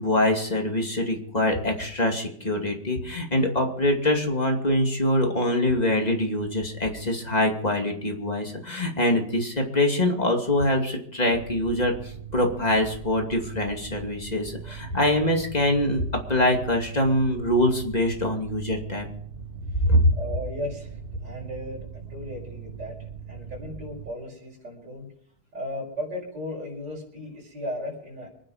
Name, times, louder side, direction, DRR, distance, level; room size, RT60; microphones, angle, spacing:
voice 1, 0.0-16.0 16.3-19.0 19.8-20.1, left 1 dB, 25° left, 2 dB, 2.6 m, -24 dB
Mechanical fan, 11.3-24.1, right 7 dB, 35° right, 1.9 m, -40 dB
voice 2, 14.7-15.0 20.1-23.0 23.3-25.1 25.5-28.3, left 1 dB, 90° right, -2 dB, 6.0 m, -36 dB
25.5 x 10.0 x 5.0 m, 0.63 s
omnidirectional pair, 1.8 m